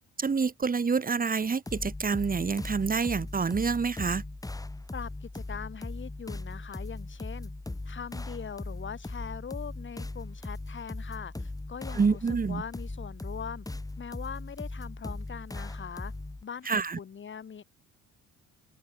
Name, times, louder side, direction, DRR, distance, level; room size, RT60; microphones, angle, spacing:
voice 1, 0.2-4.2 11.9-12.6 16.7-17.0, right 5 dB, 25° right, 5.2 m, -27 dB
sound 1, 1.7-16.4, left 2 dB, 10° left, 7.3 m, -39 dB
voice 2, 4.9-7.5 7.8-12.2 12.5-13.7 14.0-16.1 16.4-17.6, left 7 dB, 35° left, 6.0 m, -41 dB
open air
cardioid pair, 135°, 32 cm